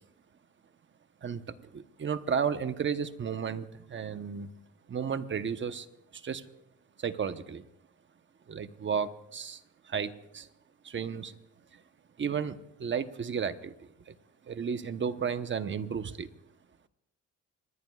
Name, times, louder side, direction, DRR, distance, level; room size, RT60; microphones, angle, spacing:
voice 1, 1.2-4.5 4.9-5.9 6.1-6.4 7.0-7.6 8.5-10.5 10.8-11.3 11.7-11.8 12.2-13.7 14.1-14.2 14.4-16.3, right 7 dB, 40° right, 10 dB, 1.0 m, -33 dB
25.5 x 20.5 x 2.4 m, 0.84 s
cardioid pair, 90°, 30 cm